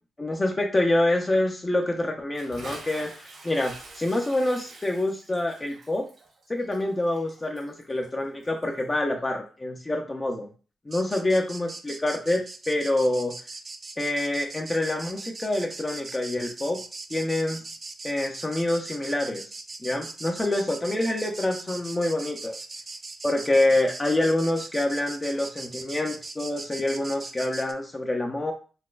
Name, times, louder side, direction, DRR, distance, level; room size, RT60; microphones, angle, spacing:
voice 1, 0.2-6.0 6.5-10.5 10.9-13.3 14.0-16.8 17.1-17.6 18.0-19.4 19.8-22.6 23.2-28.5, left 1 dB, 20° left, 2 dB, 0.5 m, -26 dB
Bathtub (filling or washing) / Splash splatter, 2.3-8.9, right 3 dB, 75° right, 1.3 m, -46 dB
sound 1, 10.9-27.7, right 3 dB, 35° right, 0.3 m, -40 dB
4.0 x 2.1 x 2.4 m, 0.37 s
cardioid pair, 90°, 0 cm